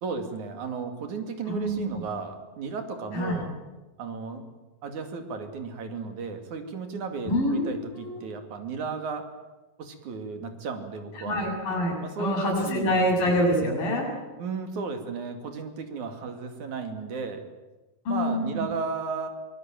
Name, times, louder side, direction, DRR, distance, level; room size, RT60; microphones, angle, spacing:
voice 1, 0.0-3.5 4.0-4.4 4.8-9.3 9.8-11.4 12.0-12.9 14.4-17.4 18.1-19.3, right 5 dB, 60° right, 6 dB, 3.6 m, -34 dB
voice 2, 1.5-2.0 3.1-3.4 7.2-8.2 11.2-14.1 18.1-18.7, equal, 70° left, -1 dB, 8.8 m, -26 dB
25.5 x 20.0 x 9.0 m, 1.1 s
omnidirectional pair, 4.2 m